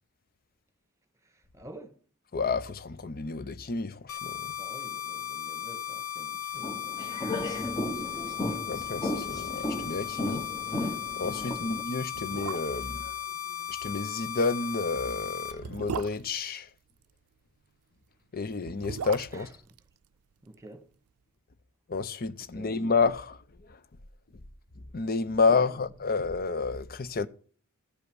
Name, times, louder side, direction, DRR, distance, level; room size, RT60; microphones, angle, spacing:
voice 1, 1.2-2.0 4.6-8.4 11.4-11.7 19.3-19.5 20.4-20.9 22.5-22.7 25.6-25.8, right 1 dB, 15° right, 1.6 m, -49 dB
voice 2, 2.3-4.5 8.7-10.5 11.2-13.2 13.6-16.7 18.3-19.5 21.9-23.8 24.9-27.3, left 4 dB, 45° left, 0.7 m, -30 dB
sound 1, 4.1-15.5, left 10 dB, 75° left, 1.6 m, -36 dB
sound 2, 6.6-11.8, left 1 dB, 20° left, 1.2 m, -34 dB
sound 3, 8.6-8.7 9.0-9.7 9.9-10.0 10.4-10.6 11.3-11.4 12.0-13.0 14.5-17.2 18.4-20.7 20.9-21.0, right 6 dB, 90° right, 0.5 m, -40 dB
15.0 x 5.6 x 6.1 m
head